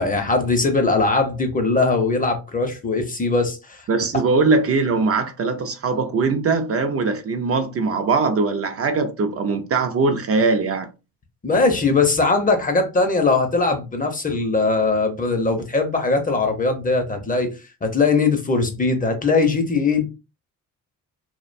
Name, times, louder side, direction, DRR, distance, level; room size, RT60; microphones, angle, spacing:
voice 1, 0.0-3.8 11.4-17.5 17.8-20.0, left 3 dB, 25° left, 0.6 m, -20 dB
voice 2, 3.9-10.9, right 4 dB, 45° right, 0.5 m, -21 dB
2.5 x 2.1 x 2.5 m
cardioid pair, 90°, 34 cm